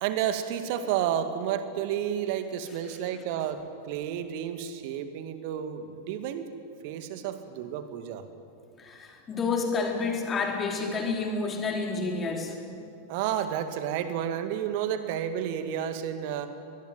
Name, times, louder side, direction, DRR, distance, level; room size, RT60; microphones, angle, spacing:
voice 1, 0.0-6.5 6.8-8.2 13.1-16.5, right 9 dB, 50° right, 9 dB, 2.1 m, -31 dB
voice 2, 8.8-12.5, left 4 dB, 25° left, 2 dB, 4.0 m, -29 dB
24.5 x 20.0 x 9.6 m, 2.5 s
figure-of-eight pair, 90°, 0 cm